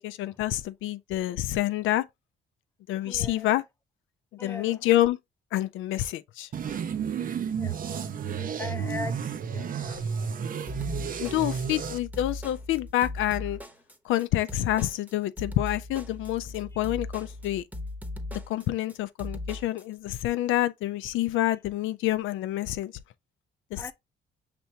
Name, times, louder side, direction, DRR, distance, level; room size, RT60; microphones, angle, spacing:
voice 1, 0.0-2.1 2.9-3.6 4.4-5.2 5.5-6.5 9.8-10.0 11.2-13.6 14.0-17.6 18.3-22.9 23.7-23.9, left 14 dB, 80° left, 0.4 m, -28 dB
voice 2, 3.0-3.5 4.4-4.9 7.5-8.0 8.6-10.0 23.8-23.9, left 4 dB, 15° left, 0.6 m, -40 dB
sound 1, 6.5-12.0, right 7 dB, 45° right, 0.5 m, -32 dB
sound 2, 10.7-19.8, left 2 dB, 10° right, 0.9 m, -38 dB
5.6 x 3.4 x 2.7 m
cardioid pair, 90°, 20 cm